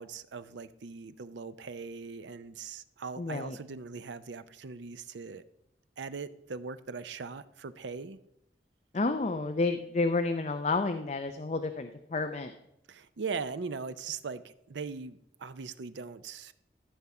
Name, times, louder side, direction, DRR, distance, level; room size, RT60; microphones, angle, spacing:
voice 1, 0.0-5.4 6.0-8.2 12.9-16.5, right 5 dB, 85° right, 13 dB, 0.5 m, -40 dB
voice 2, 3.2-3.6 8.9-12.5, left 3 dB, 40° left, 7 dB, 0.5 m, -30 dB
13.5 x 5.7 x 4.8 m, 0.83 s
head